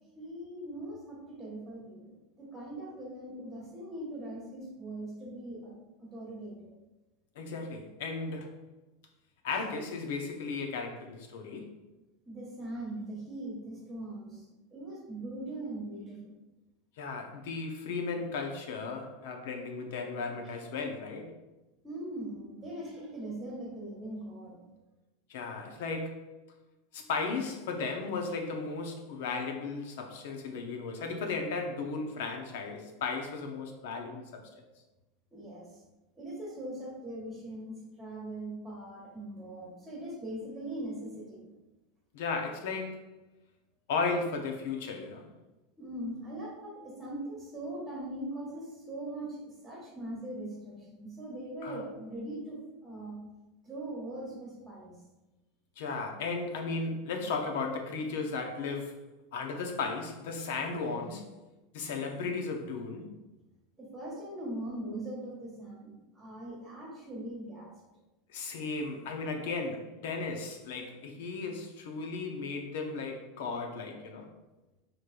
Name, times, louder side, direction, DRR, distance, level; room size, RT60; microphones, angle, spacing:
voice 1, 0.2-5.7 6.0-6.7 12.2-16.3 20.4-20.5 21.8-24.6 35.3-35.7 36.1-41.5 45.8-53.2 53.6-54.9 63.8-67.7, right 1 dB, 10° right, -3 dB, 1.5 m, -41 dB
voice 2, 7.4-8.5 9.4-11.7 17.0-21.3 25.3-26.3 26.9-34.4 42.1-43.0 43.9-45.3 51.6-51.8 55.8-59.0 59.3-61.3 61.7-63.1 68.3-74.3, left 4 dB, 70° left, 3 dB, 0.8 m, -35 dB
6.4 x 3.0 x 2.5 m, 1.1 s
supercardioid pair, 165°, 0 cm